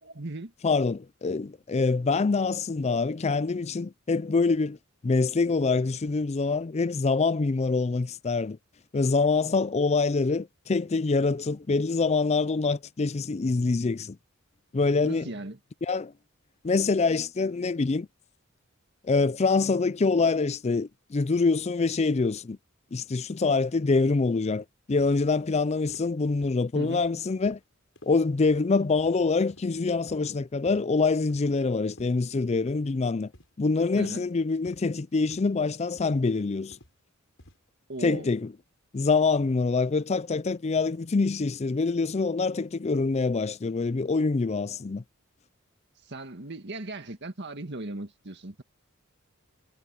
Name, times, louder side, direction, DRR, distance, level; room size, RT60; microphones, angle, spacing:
voice 1, 0.0-0.5 15.0-15.6 26.7-27.0 33.9-34.2 37.9-38.3 46.1-48.6, right 2 dB, 55° right, 1.8 m, -37 dB
voice 2, 0.6-4.8 5.0-8.6 8.9-14.2 14.7-15.3 15.8-16.1 16.6-18.1 19.0-22.6 22.9-27.6 28.0-33.3 33.6-36.8 38.0-38.5 38.9-45.0, left 4 dB, 30° left, 0.4 m, -25 dB
sound 1, 25.9-26.0 26.4-26.6 26.9-27.1 27.4-27.6 28.0-28.1 28.5-28.7 29.0-29.1 29.5-29.7 30.1-30.2 30.6-30.8 31.3-31.5 32.0-32.1 32.7-32.9 33.3-33.5 34.0-34.2 34.7-34.8 35.3-35.5 36.0-36.2 36.7-36.9 37.4-37.6 38.0-38.2, left 1 dB, 65° left, 7.9 m, -52 dB
head